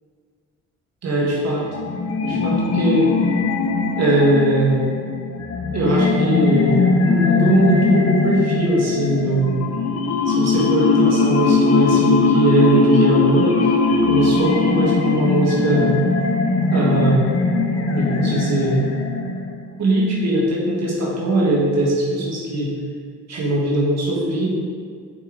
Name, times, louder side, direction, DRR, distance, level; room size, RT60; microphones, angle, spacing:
voice 1, 1.0-1.7 2.2-3.1 4.0-4.9 5.7-9.5 10.3-13.6 14.1-15.9 16.7-17.3 17.9-18.8 19.8-22.7 23.3-24.5, right 1 dB, 60° right, -4 dB, 1.5 m, -20 dB
sound 1, 1.7-19.6, left 4 dB, 55° left, 0.8 m, -19 dB
7.1 x 5.8 x 3.8 m, 2.1 s
cardioid pair, 90°, 30 cm